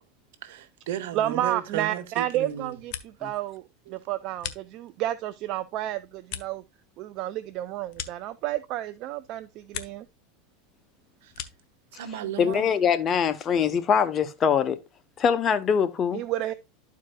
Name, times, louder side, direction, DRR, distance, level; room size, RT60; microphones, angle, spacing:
voice 1, 0.4-2.8 3.9-4.0 11.2-11.4 11.9-12.7, right 10 dB, 80° right, 1.2 m, -35 dB
voice 2, 1.1-3.6 3.9-6.6 7.0-10.1 16.1-16.5, right 13 dB, 50° right, 0.4 m, -31 dB
sound 1, 2.6-3.4 3.7-5.2 5.6-8.9 9.2-10.2 10.5-11.8, left 10 dB, 55° left, 0.9 m, -42 dB
voice 3, 12.4-14.8 15.2-16.2, left 7 dB, 30° left, 0.8 m, -23 dB
12.5 x 4.7 x 2.2 m
supercardioid pair, 130°, 0 cm